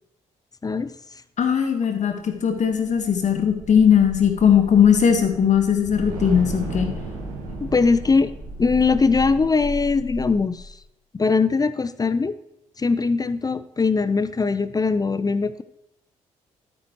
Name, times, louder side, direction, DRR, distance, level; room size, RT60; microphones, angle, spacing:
voice 1, 0.6-0.9 7.6-8.3 8.6-10.8 11.1-12.4 12.8-15.6, left 4 dB, 20° left, 14 dB, 0.6 m, -21 dB
voice 2, 1.4-6.9, left 8 dB, 45° left, 6 dB, 1.6 m, -19 dB
sound 1, 2.3-10.7, right 1 dB, 70° right, 2.8 m, -34 dB
13.5 x 9.0 x 3.2 m, 0.80 s
figure-of-eight pair, 40°, 17 cm